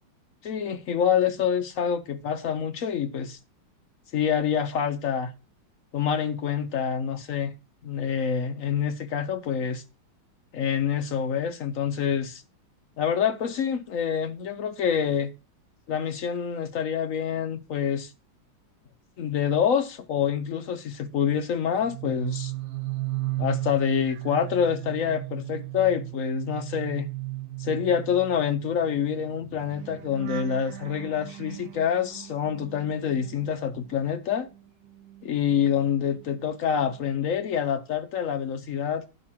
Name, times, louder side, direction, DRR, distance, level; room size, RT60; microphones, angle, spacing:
voice 1, 0.4-3.4 4.1-5.3 5.9-7.5 7.8-9.8 10.5-12.4 13.0-15.3 15.9-18.1 19.2-22.5 23.4-27.1 27.6-34.5 35.2-39.0, left 8 dB, 70° left, 0.7 m, -26 dB
sound 1, 21.7-34.0 34.3-36.4 36.7-37.1, right 18 dB, 65° right, 1.0 m, -36 dB
11.0 x 4.5 x 6.1 m
omnidirectional pair, 2.3 m